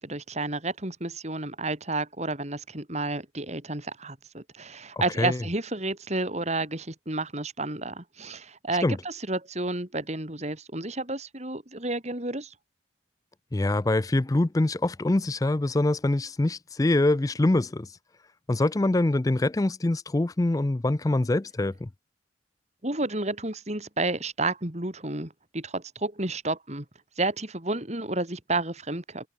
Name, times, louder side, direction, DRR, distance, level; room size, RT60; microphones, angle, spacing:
voice 1, 0.0-12.5 22.8-26.8 27.2-29.3, right 2 dB, 35° right, 3.0 m, -31 dB
voice 2, 13.5-17.9 18.5-21.9, left 2 dB, 20° left, 0.4 m, -24 dB
head